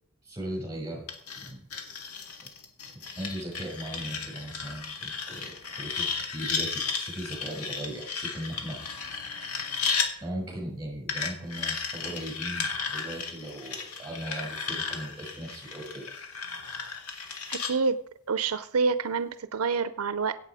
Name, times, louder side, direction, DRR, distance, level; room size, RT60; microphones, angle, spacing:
voice 1, 0.2-1.0 1.4-1.6 2.9-8.8 10.2-16.0, right 1 dB, 15° right, 0 dB, 6.2 m, -38 dB
sound 1, 1.1-10.1 11.1-17.7, left 5 dB, 85° left, 2.1 m, -34 dB
voice 2, 17.5-18.0 18.3-20.4, right 4 dB, 75° right, 13 dB, 0.6 m, -27 dB
16.5 x 8.1 x 4.9 m, 0.68 s
head